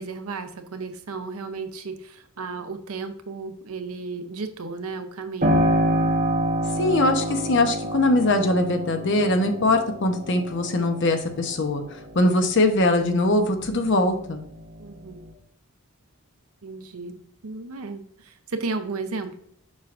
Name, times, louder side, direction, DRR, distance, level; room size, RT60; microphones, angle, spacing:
voice 1, 0.0-5.6 14.8-15.3 16.6-19.4, right 3 dB, 75° right, 8 dB, 0.8 m, -34 dB
Piano, 5.4-13.8 14.3-15.3, equal, 35° right, 1.1 m, -27 dB
voice 2, 6.8-11.8 12.1-14.4, left 2 dB, 55° left, 5 dB, 0.9 m, -21 dB
7.2 x 5.7 x 2.5 m, 0.67 s
head